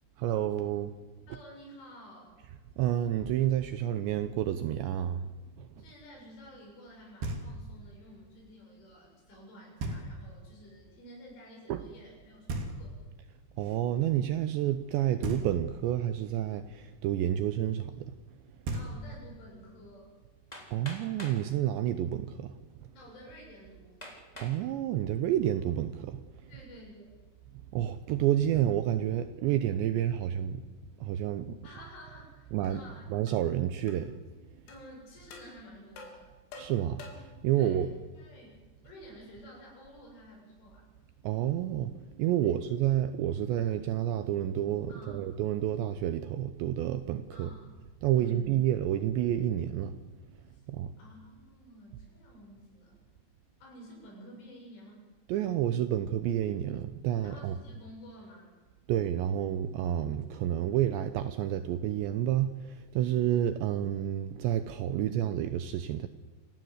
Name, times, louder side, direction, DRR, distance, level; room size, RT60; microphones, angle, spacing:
voice 1, 0.2-0.9 2.8-5.2 5.6-5.7 11.7-11.8 13.6-18.1 20.7-22.6 24.4-26.2 27.7-30.6 31.0-31.6 32.5-32.8 33.1-34.1 36.6-37.9 41.2-47.5 48.0-50.0 50.7-50.9 55.3-57.5 58.9-66.1, right 11 dB, 80° right, 11 dB, 2.7 m, -29 dB
voice 2, 1.3-2.4 5.8-13.0 18.7-20.1 22.9-24.0 26.5-27.2 31.6-33.1 34.7-36.3 37.6-40.9 42.4-42.6 44.9-45.2 47.3-47.8 48.1-48.5 50.5-50.7 51.0-53.1 53.6-55.1 57.2-58.6, equal, 70° left, -1 dB, 10.0 m, -51 dB
Knock, 7.2-7.9 9.8-10.5 12.5-13.3 15.2-16.0 18.3-18.4 18.6-19.5, right 2 dB, 55° right, 4.5 m, -37 dB
Hammer, 20.5-21.4 22.4-22.5 23.0-23.1 24.0-24.6 25.2-25.6, left 1 dB, 10° left, 2.9 m, -46 dB
sound 1, 32.7-32.8 33.3-33.5 33.9-34.0 34.7-34.8 35.3-35.5 36.0-37.4, left 3 dB, 85° left, 6.3 m, -48 dB
28.0 x 17.0 x 8.0 m, 1.2 s
omnidirectional pair, 5.9 m